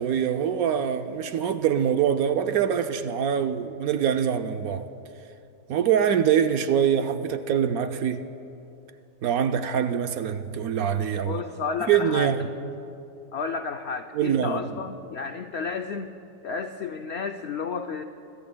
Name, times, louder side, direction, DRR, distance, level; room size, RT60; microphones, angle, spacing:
voice 1, 0.0-4.9 5.7-8.3 9.2-11.4 11.9-12.5 14.1-14.6, right 8 dB, 65° right, 1.0 m, -24 dB
voice 2, 11.2-12.4 13.3-16.2 16.4-18.0, left 5 dB, 90° left, 0.5 m, -32 dB
25.5 x 25.5 x 2.2 m
omnidirectional pair, 1.8 m